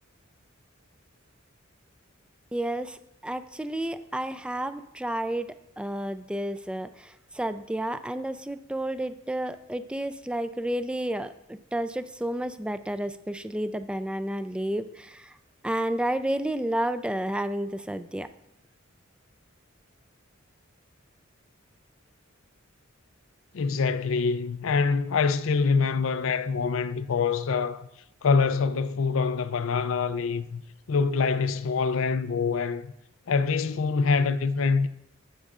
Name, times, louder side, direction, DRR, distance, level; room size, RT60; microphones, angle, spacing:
voice 1, 2.5-5.5 5.8-15.3 15.6-18.3, right 1 dB, 5° right, 0.3 m, -31 dB
voice 2, 23.5-27.9 28.2-30.6 30.9-32.9 33.3-34.9, left 5 dB, 70° left, 0.5 m, -25 dB
15.0 x 7.5 x 2.4 m
head